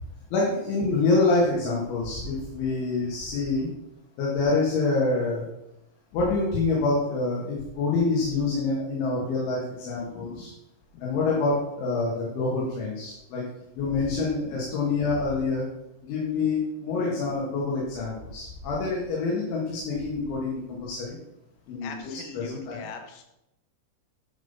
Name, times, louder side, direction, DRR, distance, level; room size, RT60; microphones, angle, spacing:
voice 1, 0.3-3.7 4.2-5.5 6.1-10.5 11.0-13.4 13.8-15.7 16.0-21.2 21.7-22.8, left 3 dB, 70° left, -4 dB, 4.3 m, -26 dB
voice 2, 21.8-23.2, left 5 dB, 85° left, 5 dB, 4.2 m, -41 dB
10.5 x 7.4 x 5.7 m, 0.87 s
omnidirectional pair, 5.9 m